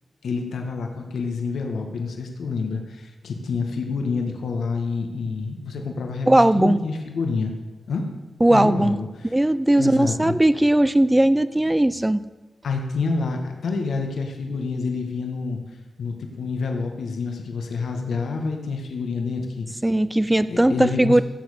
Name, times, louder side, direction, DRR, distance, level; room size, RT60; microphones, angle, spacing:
voice 1, 0.2-7.5 7.9-8.0 8.5-9.3 9.7-10.3 12.6-15.6 16.0-19.7 20.5-21.2, left 4 dB, 85° left, 3 dB, 1.7 m, -28 dB
voice 2, 6.3-6.8 8.4-9.0 9.2-12.2 19.8-21.2, right 1 dB, 10° right, 15 dB, 0.5 m, -18 dB
16.5 x 7.6 x 6.7 m, 1.2 s
wide cardioid pair, 125°, 0 cm